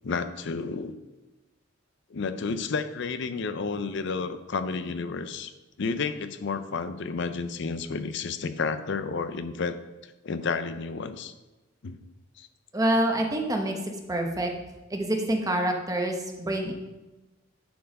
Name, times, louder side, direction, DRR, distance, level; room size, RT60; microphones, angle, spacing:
voice 1, 0.0-0.9 2.1-5.5 5.8-9.8 10.2-11.3 11.8-12.0 12.4-12.5, left 4 dB, 60° left, 11 dB, 0.5 m, -31 dB
voice 2, 12.7-14.5 14.9-16.7, right 1 dB, 20° right, 2 dB, 1.0 m, -27 dB
10.0 x 4.7 x 5.2 m, 1.1 s
head